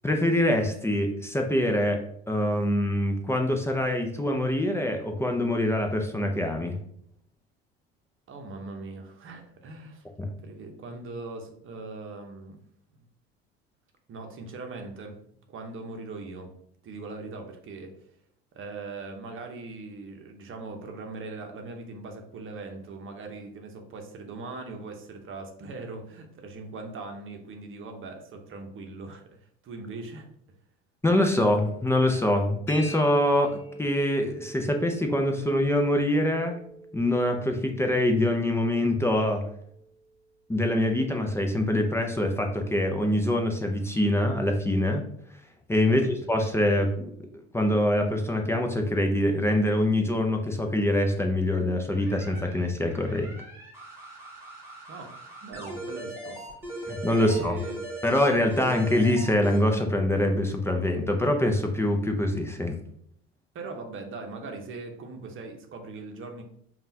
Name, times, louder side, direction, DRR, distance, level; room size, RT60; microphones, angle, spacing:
voice 1, 0.0-2.0 2.3-6.8 31.0-36.6 36.9-39.4 40.5-45.0 45.7-47.1 47.5-53.3 56.9-57.6 58.0-62.8, left 1 dB, 10° left, 3 dB, 0.5 m, -24 dB
voice 2, 8.3-10.0 10.4-12.6 14.1-15.2 15.5-16.5 16.8-17.9 18.5-30.3 45.8-46.1 54.9-55.1 55.4-56.5 56.7-57.8 63.5-66.4, right 3 dB, 40° right, 4 dB, 0.9 m, -40 dB
sound 1, 32.7-40.2, right 1 dB, 45° left, 1.6 m, -44 dB
sound 2, 51.9-59.6, right 1 dB, 10° right, 1.5 m, -40 dB
5.3 x 2.4 x 2.7 m, 0.69 s
hypercardioid pair, 75°, 31 cm